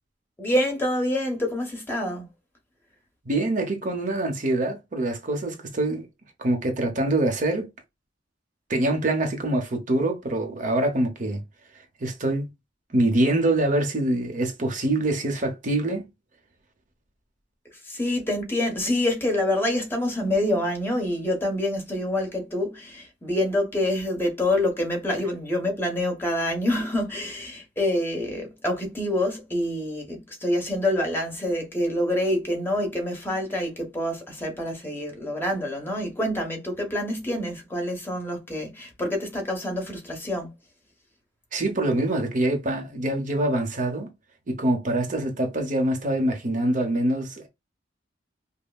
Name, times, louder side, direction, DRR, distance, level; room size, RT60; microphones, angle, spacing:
voice 1, 0.4-2.3 17.8-40.5, left 1 dB, 10° left, 1.1 m, -26 dB
voice 2, 3.3-6.1 6.4-7.7 8.7-11.4 12.0-12.5 12.9-16.1 41.5-44.1 44.5-47.5, right 1 dB, 45° right, 0.8 m, -25 dB
5.3 x 2.1 x 2.3 m
head